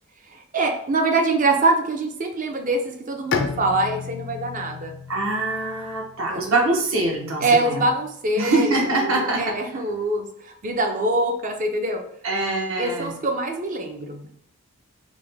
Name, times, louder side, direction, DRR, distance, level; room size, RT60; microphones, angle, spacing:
voice 1, 0.5-5.0 6.3-6.6 7.4-8.7 9.0-12.0 12.8-14.3, right 2 dB, 35° right, 4 dB, 0.5 m, -24 dB
Bowed string instrument, 3.3-6.9, left 5 dB, 50° left, 0.4 m, -32 dB
voice 2, 5.1-7.9 8.4-9.6 12.2-13.1, right 2 dB, 65° right, 0 dB, 1.0 m, -24 dB
4.9 x 2.1 x 3.4 m, 0.66 s
head